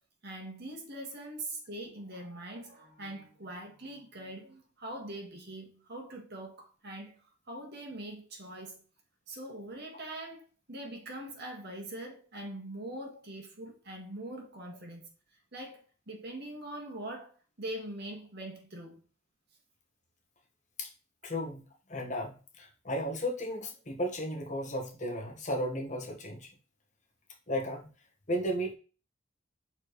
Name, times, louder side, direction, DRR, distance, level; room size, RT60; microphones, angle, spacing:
voice 1, 0.2-7.1 7.5-8.8 9.3-15.1 15.5-15.8 16.1-17.3 17.6-19.0, right 1 dB, 55° right, 1.8 m, -42 dB
voice 2, 21.2-21.6 21.9-26.5 27.5-27.9 28.3-28.7, equal, 40° left, 1.5 m, -34 dB
6.7 x 4.4 x 3.2 m
head